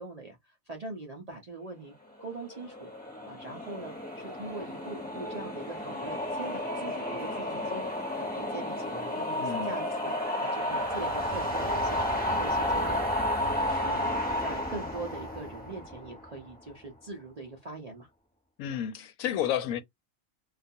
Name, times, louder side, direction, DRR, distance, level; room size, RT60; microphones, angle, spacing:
voice 1, 0.0-1.9 2.2-2.9 3.2-7.8 8.2-13.0 13.4-14.1 14.4-18.1, right 3 dB, 55° right, 0.4 m, -42 dB
sound 1, 2.2-16.5, left 1 dB, 10° left, 0.8 m, -32 dB
voice 2, 9.4-9.7 18.6-19.8, left 10 dB, 85° left, 1.0 m, -31 dB
2.4 x 2.3 x 2.6 m
omnidirectional pair, 1.4 m